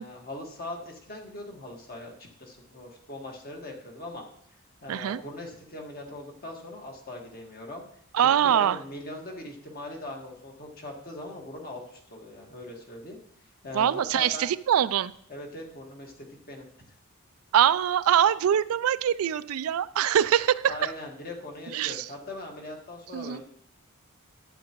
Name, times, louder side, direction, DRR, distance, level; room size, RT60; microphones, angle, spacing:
voice 1, 0.0-4.2 4.8-7.8 8.2-13.2 13.6-14.5 15.3-16.1 16.5-16.9 20.6-23.4, left 2 dB, 45° left, 1 dB, 1.7 m, -40 dB
voice 2, 4.9-5.2 8.1-8.8 13.7-15.1 17.5-20.9 21.7-22.1 23.1-23.4, right 9 dB, 70° right, 16 dB, 0.3 m, -23 dB
11.5 x 8.6 x 3.0 m, 0.66 s
head